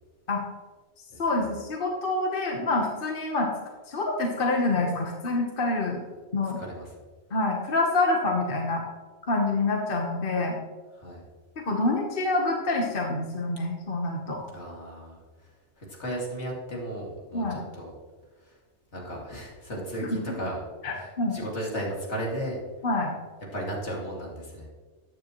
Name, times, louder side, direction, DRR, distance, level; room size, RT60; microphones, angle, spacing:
voice 1, 1.2-3.5 3.9-6.0 6.3-6.6 7.3-8.8 9.3-10.6 11.6-14.4 17.3-17.6 20.1-20.2 20.8-21.4 22.8-23.1, left 2 dB, 50° left, 1 dB, 1.3 m, -26 dB
voice 2, 6.6-6.9 11.0-11.2 14.5-15.5 15.8-17.9 18.4-18.5 18.9-20.6 20.9-22.6 23.5-24.7, right 1 dB, 75° left, -2 dB, 2.7 m, -35 dB
14.0 x 9.5 x 3.1 m, 1.4 s
omnidirectional pair, 1.2 m